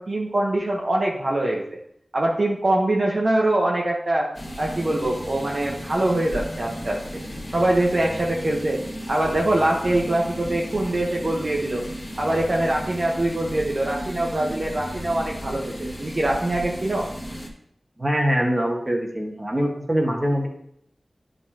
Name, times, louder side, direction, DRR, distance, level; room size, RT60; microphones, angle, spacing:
voice 1, 0.0-1.8 2.1-4.3 4.6-7.2 7.5-8.8 9.1-11.8 12.2-17.1, right 1 dB, 55° right, -3 dB, 1.1 m, -23 dB
sound 1, 4.3-17.5, equal, 25° left, 1.5 m, -35 dB
voice 2, 18.0-20.5, equal, 25° right, 0 dB, 1.8 m, -23 dB
10.5 x 5.4 x 2.9 m, 0.70 s
wide cardioid pair, 60°, 0 cm